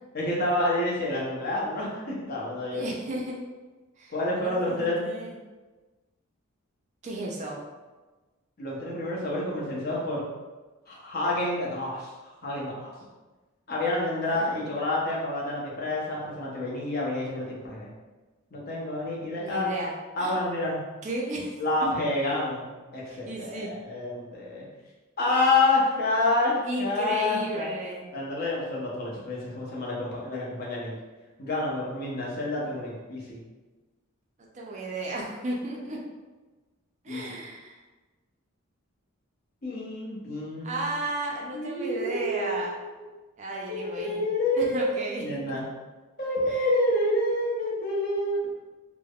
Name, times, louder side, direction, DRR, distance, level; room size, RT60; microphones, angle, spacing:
voice 1, 0.1-2.8 4.1-5.1 8.6-10.2 10.9-12.1 12.4-12.9 13.7-17.9 18.5-19.7 20.2-20.8 21.6-24.7 25.2-27.7 28.1-31.0 31.4-33.4 37.1-37.4 39.6-41.0 41.5-43.0 43.7-45.6 46.2-48.4, left 2 dB, 45° left, -5 dB, 0.7 m, -28 dB
voice 2, 2.7-3.4 4.0-4.1 4.4-5.4 7.0-7.6 14.4-14.7 19.4-20.4 21.0-21.9 23.1-23.7 26.6-28.1 34.4-36.0 37.0-37.8 40.6-42.7 43.4-44.2 44.6-45.6 46.5-46.6, right 1 dB, 35° right, -2 dB, 0.4 m, -34 dB
3.3 x 2.0 x 2.3 m, 1.2 s
head